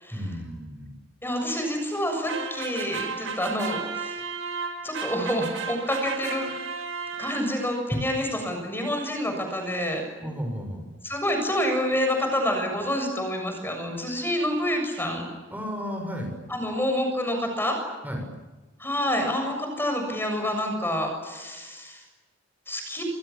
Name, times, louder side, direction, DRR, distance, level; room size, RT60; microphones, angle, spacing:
voice 1, 0.1-0.9 10.2-10.9 15.5-16.3 18.0-18.3, equal, 10° right, 3 dB, 7.2 m, -33 dB
voice 2, 1.2-4.2 4.8-6.5 7.2-10.0 11.0-15.3 16.5-17.8 18.8-22.0 22.7-23.1, equal, 10° left, 4 dB, 7.2 m, -27 dB
sound 1, 2.3-7.8, right 5 dB, 75° right, 5.8 m, -34 dB
29.5 x 26.0 x 7.2 m, 1.2 s
head